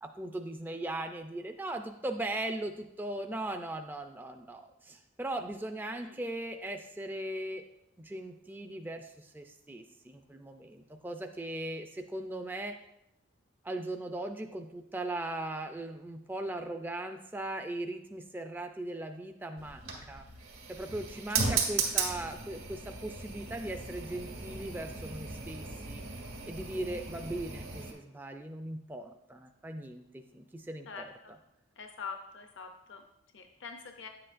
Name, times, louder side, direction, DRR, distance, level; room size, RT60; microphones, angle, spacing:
voice 1, 0.0-7.6 8.0-12.8 13.6-20.2 20.7-26.0 26.5-31.1, right 1 dB, 10° right, 5 dB, 0.3 m, -39 dB
Gas stovetop, 19.6-27.9, right 5 dB, 90° right, 1.9 m, -36 dB
voice 2, 30.9-31.3 31.8-33.0 33.3-34.1, left 5 dB, 60° left, 4 dB, 0.5 m, -44 dB
10.0 x 7.7 x 2.5 m, 0.85 s
head